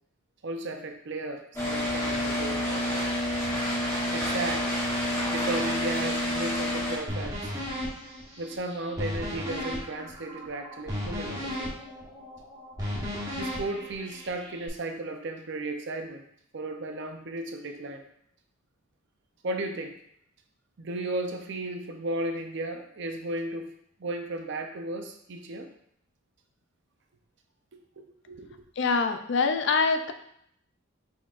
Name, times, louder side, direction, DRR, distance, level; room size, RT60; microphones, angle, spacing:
voice 1, 0.4-3.1 4.1-4.7 5.3-7.5 8.4-11.8 13.3-16.2 16.5-18.0 19.4-20.0 20.8-23.7 24.0-25.7 28.0-28.6, right 2 dB, 55° right, 4 dB, 0.6 m, -35 dB
sound 1, 1.5-7.0, left 1 dB, 15° left, 1.1 m, -28 dB
sound 2, 7.1-14.7, equal, 15° right, 1.1 m, -35 dB
voice 2, 28.8-30.1, left 4 dB, 55° left, 8 dB, 0.4 m, -24 dB
4.7 x 4.1 x 2.5 m, 0.70 s
head